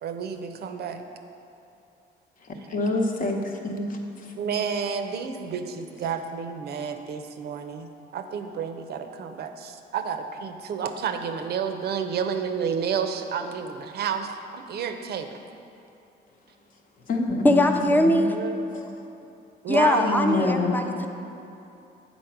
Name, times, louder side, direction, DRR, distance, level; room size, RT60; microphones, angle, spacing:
voice 1, 0.0-1.0 4.4-15.4 17.9-18.6 19.6-20.8, right 6 dB, 65° right, 7 dB, 0.6 m, -30 dB
voice 2, 2.4-4.3 5.6-5.7 17.1-18.3 18.7-18.9 20.0-20.8, left 2 dB, 50° left, 2 dB, 0.9 m, -27 dB
voice 3, 17.4-18.3 19.7-21.1, left 1 dB, 10° left, 5 dB, 0.5 m, -21 dB
7.8 x 4.2 x 5.8 m, 2.7 s
cardioid pair, 110°, 18 cm